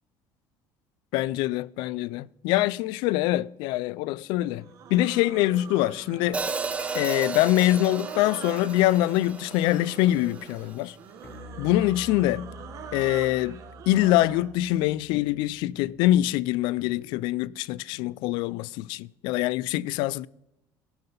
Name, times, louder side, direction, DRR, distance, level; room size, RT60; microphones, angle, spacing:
voice 1, 1.1-6.4 6.9-11.0 11.6-12.5 12.9-13.6 13.9-20.3, left 15 dB, 75° left, 0.3 m, -24 dB
sound 1, 4.6-14.5, right 8 dB, 45° right, 1.3 m, -44 dB
Hi-hat, 6.3-10.5, right 4 dB, 15° right, 0.8 m, -34 dB
sound 2, 11.2-16.5, left 3 dB, 25° left, 1.1 m, -47 dB
17.0 x 5.8 x 5.4 m
cardioid pair, 160°, 8 cm